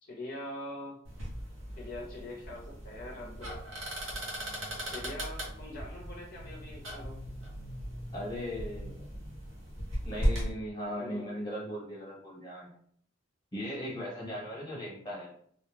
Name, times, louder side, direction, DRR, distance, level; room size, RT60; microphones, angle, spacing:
voice 1, 0.0-1.0 1.8-3.6 4.9-7.2 10.9-11.3, left 1 dB, 50° left, -2 dB, 0.5 m, -43 dB
sound 1, 1.0-10.5, equal, 75° right, 0.9 m, -37 dB
voice 2, 8.1-9.1 10.0-12.8 13.5-15.3, equal, 20° left, -4 dB, 0.9 m, -38 dB
2.3 x 2.1 x 3.2 m, 0.63 s
head